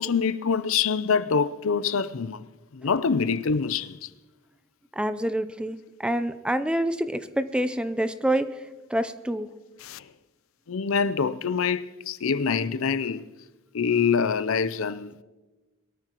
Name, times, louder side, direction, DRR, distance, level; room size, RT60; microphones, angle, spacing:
voice 1, 0.0-2.5 2.7-4.1 9.8-10.0 10.7-13.3 13.7-15.2, left 6 dB, 70° left, 0.5 m, -25 dB
voice 2, 5.0-8.5 8.9-9.5, right 1 dB, 5° right, 0.5 m, -27 dB
22.0 x 13.5 x 3.0 m
head